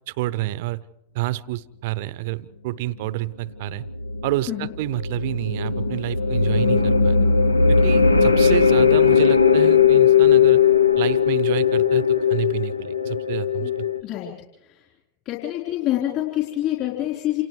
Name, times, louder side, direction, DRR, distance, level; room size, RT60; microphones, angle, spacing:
voice 1, 0.1-0.8 1.1-3.8 4.2-7.2 7.7-10.6 11.0-13.9, right 16 dB, 50° right, 19 dB, 0.7 m, -29 dB
sound 1, 3.7-14.0, left 6 dB, 80° left, 0.7 m, -18 dB
voice 2, 15.3-17.4, left 13 dB, 40° left, -2 dB, 3.9 m, -26 dB
29.0 x 28.5 x 3.2 m, 0.94 s
figure-of-eight pair, 90°, 0 cm